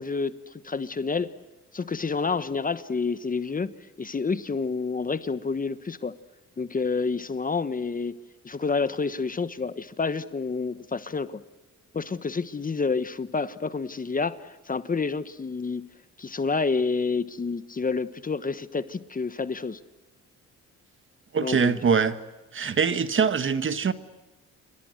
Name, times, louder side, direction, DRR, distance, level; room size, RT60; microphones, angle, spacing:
voice 1, 0.0-1.3 1.7-3.7 4.0-6.1 6.6-8.2 8.4-11.4 11.9-15.9 16.2-19.8 21.4-21.8, left 4 dB, 30° left, 1.3 m, -29 dB
voice 2, 21.3-22.2 22.5-23.9, right 6 dB, 40° right, 1.7 m, -23 dB
28.0 x 24.5 x 7.9 m
cardioid pair, 90°, 30 cm